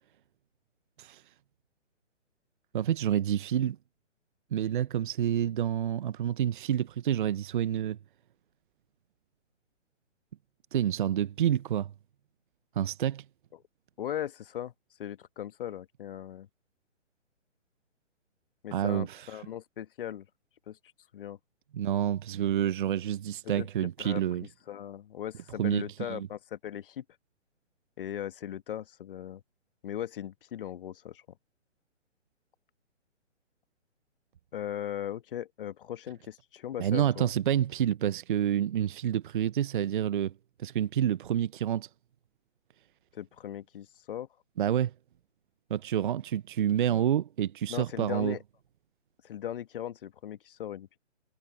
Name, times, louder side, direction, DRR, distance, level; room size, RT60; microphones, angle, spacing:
voice 1, 2.7-3.8 4.5-8.0 10.7-11.9 12.8-13.2 18.7-19.4 21.7-24.5 25.6-26.3 36.8-40.3 40.6-41.9 44.6-44.9 45.7-48.4, right 10 dB, 45° right, 0.8 m, -28 dB
voice 2, 14.0-14.7 15.0-16.5 18.6-20.2 20.7-20.8 21.1-21.4 23.6-23.7 24.0-24.2 24.7-27.0 28.0-29.4 29.8-31.2 34.5-37.3 43.1-44.3 47.7-48.4 49.2-51.0, left 10 dB, 45° left, 1.5 m, -38 dB
figure-of-eight pair, 140°, 37 cm